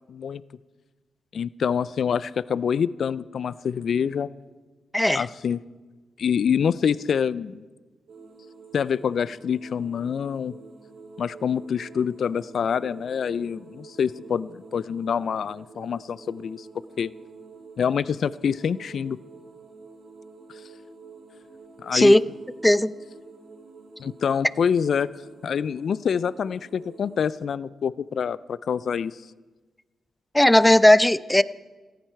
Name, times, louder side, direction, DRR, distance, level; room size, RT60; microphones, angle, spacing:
voice 1, 0.1-0.4 1.3-4.3 5.1-5.6 6.2-7.6 8.7-10.5 11.2-16.7 17.0-17.1 17.8-19.2 21.8-22.1 24.0-25.1 25.4-29.2, left 7 dB, 70° left, 19 dB, 0.4 m, -26 dB
voice 2, 4.9-5.3 21.9-22.2 22.6-22.9 30.3-31.4, left 1 dB, 10° left, 17 dB, 0.5 m, -16 dB
sound 1, 8.1-27.2, right 4 dB, 75° right, 4.4 m, -47 dB
18.5 x 14.5 x 4.5 m, 1.3 s
supercardioid pair, 50°, 0 cm